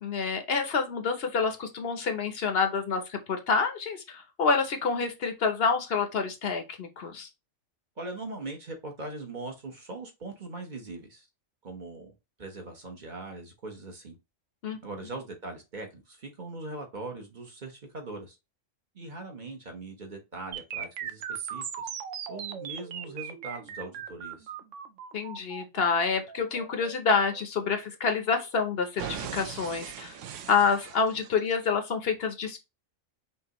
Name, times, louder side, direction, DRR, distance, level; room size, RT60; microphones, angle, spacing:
voice 1, 0.0-7.3 14.6-14.8 25.1-30.1 30.5-32.6, left 5 dB, 55° left, 0.9 m, -27 dB
voice 2, 8.0-11.3 11.6-12.1 12.4-14.2 14.8-18.4 18.9-21.9 22.3-24.5, right 2 dB, 40° right, 1.1 m, -41 dB
sound 1, 20.5-28.5 29.0-31.5, right 8 dB, 75° right, 0.9 m, -39 dB
5.4 x 2.6 x 2.9 m
omnidirectional pair, 1.3 m